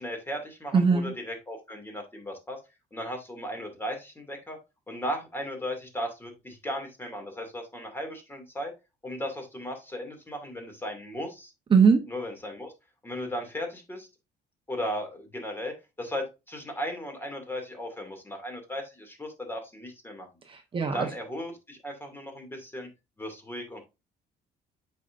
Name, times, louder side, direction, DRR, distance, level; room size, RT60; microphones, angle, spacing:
voice 1, 0.0-2.6 2.9-4.6 4.9-8.7 9.0-11.5 12.1-12.7 13.0-14.1 14.7-20.3 20.8-22.9 23.2-23.8, equal, 15° left, 4 dB, 2.4 m, -36 dB
voice 2, 0.7-1.1 11.7-12.0 20.4-21.1, right 5 dB, 30° right, 4 dB, 1.0 m, -21 dB
8.2 x 5.6 x 2.6 m, 0.26 s
cardioid pair, 110°, 17 cm